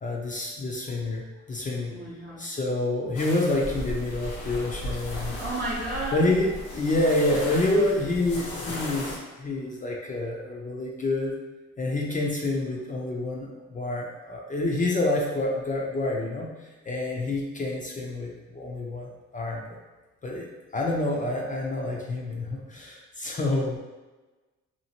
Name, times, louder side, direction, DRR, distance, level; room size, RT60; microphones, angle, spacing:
voice 1, 0.0-1.9 2.4-5.4 6.1-6.5 6.7-11.4 11.8-16.5 16.8-19.1 19.3-19.8 20.2-20.5 20.7-23.8, left 2 dB, 25° left, -2 dB, 0.5 m, -28 dB
voice 2, 1.9-2.4 5.4-6.6, right 1 dB, 30° right, -8 dB, 0.7 m, -33 dB
sound 1, 3.1-9.2, equal, 85° left, 0.9 m, -36 dB
2.8 x 2.4 x 2.8 m, 1.2 s
cardioid pair, 90°, 30 cm